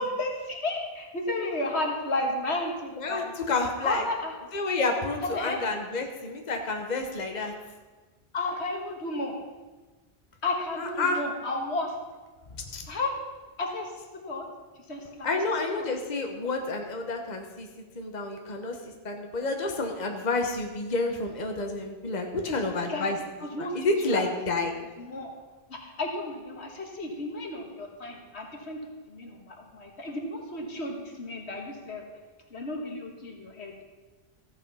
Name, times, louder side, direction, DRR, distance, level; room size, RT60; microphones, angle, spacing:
voice 1, 0.0-3.3 3.8-4.3 5.3-5.6 8.3-9.4 10.4-11.9 12.9-13.1 13.6-14.5 14.9-15.9 22.5-22.6 22.9-24.2 24.8-25.3 25.7-28.8 29.1-32.0 32.5-33.7, left 2 dB, 80° left, 2 dB, 2.0 m, -33 dB
voice 2, 3.0-4.0 4.5-7.5 10.8-11.2 12.5-12.8 15.2-17.7 17.9-18.8 19.0-23.2 23.6-24.7, left 3 dB, 40° left, 3 dB, 1.3 m, -29 dB
14.0 x 8.2 x 5.5 m, 1.3 s
omnidirectional pair, 1.1 m